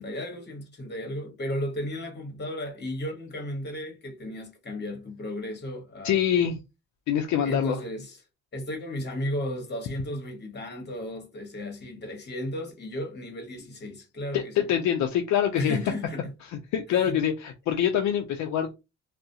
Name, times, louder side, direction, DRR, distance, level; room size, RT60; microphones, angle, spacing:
voice 1, 0.0-6.4 7.4-8.2 8.5-14.6 15.5-16.2 16.9-17.2, left 1 dB, 35° left, 1.1 m, -34 dB
voice 2, 6.0-6.6 7.1-7.8 14.3-15.8 16.5-18.8, left 9 dB, 70° left, 0.4 m, -25 dB
2.3 x 2.1 x 2.6 m
cardioid pair, 90°, 30 cm